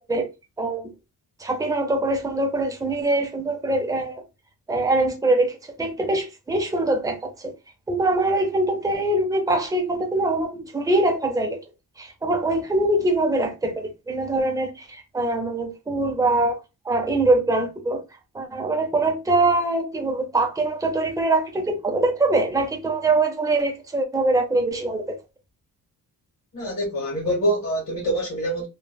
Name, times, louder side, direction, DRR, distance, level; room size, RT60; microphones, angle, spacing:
voice 1, 0.6-0.9 1.4-4.2 4.7-7.5 7.9-11.6 12.0-16.6 16.8-18.0 18.3-25.2, right 2 dB, 10° right, 0.6 m, -23 dB
voice 2, 26.5-28.7, right 1 dB, 45° left, 1.7 m, -25 dB
3.3 x 2.3 x 2.3 m
cardioid pair, 125°, 36 cm